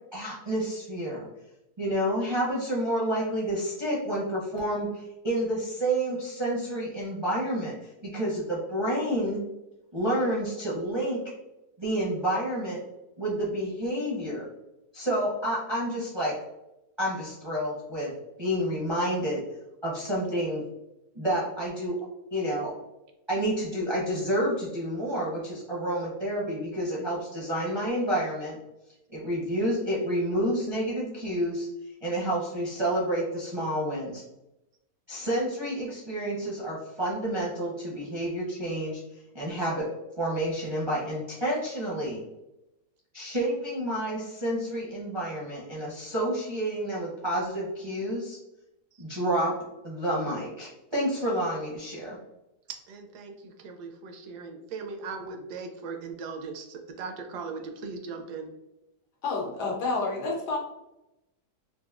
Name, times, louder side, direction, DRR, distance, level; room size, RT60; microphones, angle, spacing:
voice 1, 0.1-1.3 1.8-7.7 8.0-9.4 9.9-11.2 11.8-12.8 13.2-14.5 14.9-16.3 17.0-18.1 18.4-19.4 19.8-20.6 21.1-22.0 22.3-22.7 23.3-28.6 29.1-31.7 32.0-34.2 35.1-39.0 39.3-39.8 40.2-42.2 43.1-48.4 49.0-49.5 49.8-52.2, right 1 dB, 30° right, -5 dB, 0.5 m, -29 dB
voice 2, 52.9-58.5, right 4 dB, 80° right, 4 dB, 1.1 m, -39 dB
voice 3, 59.2-60.6, left 3 dB, 75° left, -1 dB, 1.4 m, -29 dB
4.0 x 2.6 x 2.4 m, 0.91 s
omnidirectional pair, 1.7 m